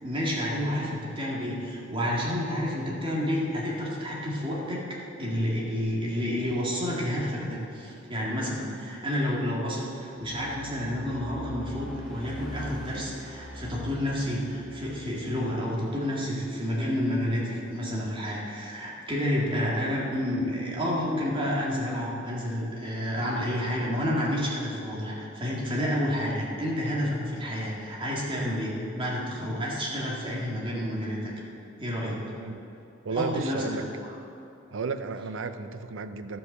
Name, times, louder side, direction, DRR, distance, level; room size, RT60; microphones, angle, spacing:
voice 1, 0.0-31.3 31.8-32.2 33.1-33.9, equal, 30° right, -4 dB, 2.1 m, -30 dB
sound 1, 10.2-16.4, equal, ahead, 2.1 m, -43 dB
voice 2, 33.0-33.8 34.7-36.4, right 4 dB, 85° right, 10 dB, 0.5 m, -33 dB
13.0 x 5.5 x 6.7 m, 2.8 s
head